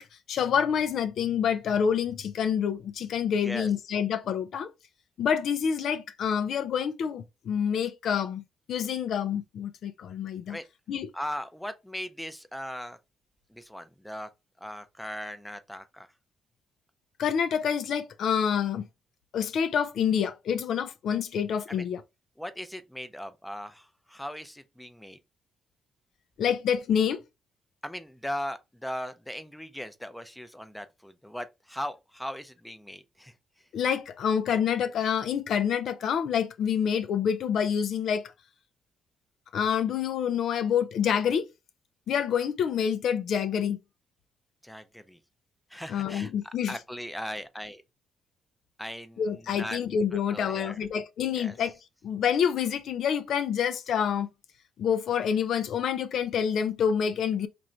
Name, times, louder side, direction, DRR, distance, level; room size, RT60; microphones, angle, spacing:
voice 1, 0.0-4.7 5.2-8.4 8.7-10.6 10.9-11.1 17.2-18.8 19.3-22.0 26.4-27.2 33.7-38.3 39.5-41.5 42.1-43.8 45.9-46.7 49.2-51.7 52.0-54.3 54.8-57.5, left 8 dB, 70° left, 0.4 m, -27 dB
voice 2, 11.1-13.0 13.5-14.3 14.6-16.1 21.7-21.8 22.4-25.2 27.8-33.3 44.6-45.2 45.7-46.3 46.7-47.8 48.8-49.3 49.6-49.8 50.3-50.8 51.3-51.6, equal, 5° left, 0.5 m, -38 dB
3.0 x 2.6 x 4.4 m
cardioid pair, 90°, 0 cm